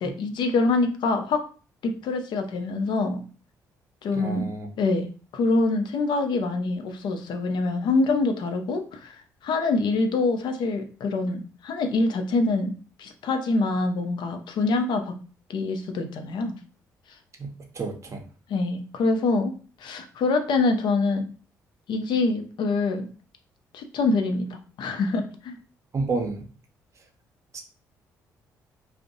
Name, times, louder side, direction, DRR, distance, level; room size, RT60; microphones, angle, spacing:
voice 1, 0.0-1.5 1.8-3.2 4.0-4.5 4.8-9.2 9.4-15.2 15.5-16.5 18.5-19.5 19.8-21.3 21.9-23.1 23.7-25.6, left 3 dB, 55° left, 6 dB, 0.5 m, -25 dB
voice 2, 4.1-4.7 17.4-18.2 25.9-26.5 27.5-27.6, right 3 dB, 35° right, 3 dB, 0.6 m, -30 dB
2.5 x 2.0 x 2.6 m, 0.38 s
figure-of-eight pair, 45°, 9 cm